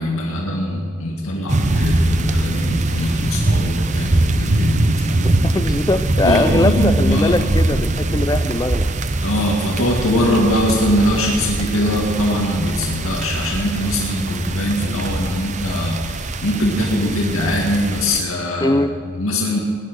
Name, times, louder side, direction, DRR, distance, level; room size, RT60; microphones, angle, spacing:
voice 1, 0.0-5.6 6.2-7.4 9.2-18.8 19.0-19.6, left 1 dB, 85° left, -2 dB, 2.1 m, -21 dB
sound 1, 1.5-18.2, right 2 dB, 35° right, 0.6 m, -22 dB
voice 2, 5.4-8.9 18.6-18.9, left 2 dB, 15° left, 11 dB, 0.4 m, -20 dB
19.0 x 11.5 x 6.4 m, 2.2 s
head